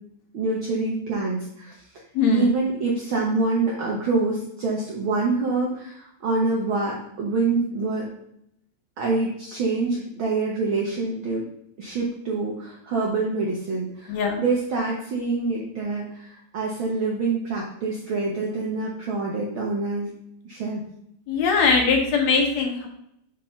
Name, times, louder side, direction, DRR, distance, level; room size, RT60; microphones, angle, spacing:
voice 1, 0.3-1.7 2.3-8.1 9.0-11.4 11.8-20.1 20.4-20.8, right 3 dB, 60° right, -2 dB, 1.3 m, -26 dB
voice 2, 2.1-2.5 14.1-14.4 21.3-22.9, left 4 dB, 70° left, 2 dB, 2.3 m, -21 dB
5.6 x 3.9 x 5.7 m, 0.75 s
omnidirectional pair, 3.3 m